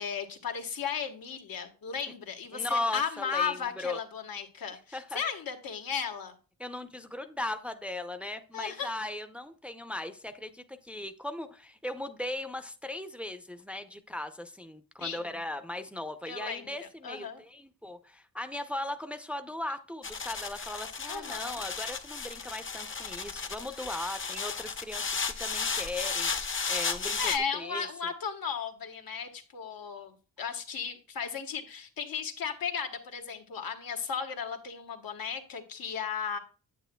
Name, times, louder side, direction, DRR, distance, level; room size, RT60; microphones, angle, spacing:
voice 1, 0.0-6.3 8.5-8.9 15.0-15.4 16.3-17.4 21.1-21.7 27.2-36.4, left 6 dB, 75° left, 5 dB, 1.4 m, -35 dB
voice 2, 2.5-4.0 4.9-5.2 6.6-27.9, left 1 dB, 5° right, 8 dB, 0.6 m, -38 dB
sound 1, 20.0-27.4, left 5 dB, 35° left, 0.8 m, -34 dB
9.2 x 8.6 x 2.2 m, 0.37 s
wide cardioid pair, 115°, 35 cm